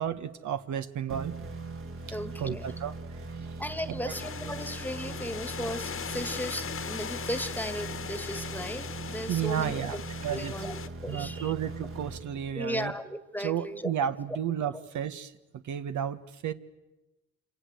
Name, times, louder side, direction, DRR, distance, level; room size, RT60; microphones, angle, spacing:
voice 1, 0.0-1.3 2.4-2.9 3.3-3.5 4.0-4.1 9.3-10.0 10.2-10.5 11.1-12.9 13.4-15.3 15.6-16.5, right 9 dB, 75° right, 10 dB, 1.4 m, -32 dB
sound 1, 1.1-12.8, right 3 dB, 45° right, 2.3 m, -40 dB
voice 2, 2.1-2.7 3.6-9.9 10.3-11.5 12.5-13.9 14.7-14.8, equal, 5° left, 13 dB, 1.6 m, -36 dB
sound 2, 4.1-10.9, left 7 dB, 45° left, 1.4 m, -39 dB
28.0 x 26.5 x 8.0 m, 1.0 s
cardioid pair, 90°, 30 cm